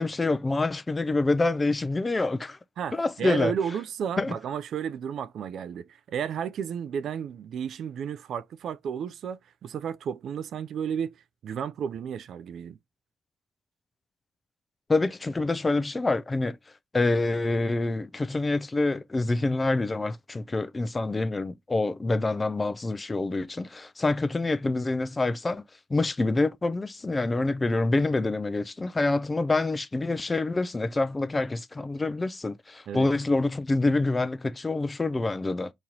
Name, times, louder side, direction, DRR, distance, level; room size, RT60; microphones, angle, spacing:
voice 1, 0.0-2.6 2.9-3.5 4.2-4.3 14.9-16.6 16.9-25.6 25.9-35.7, left 2 dB, 20° left, 0.4 m, -26 dB
voice 2, 2.8-11.2 11.4-12.8 32.9-33.1, right 8 dB, 65° right, 0.3 m, -33 dB
3.0 x 2.8 x 3.8 m
cardioid pair, 90°, 0 cm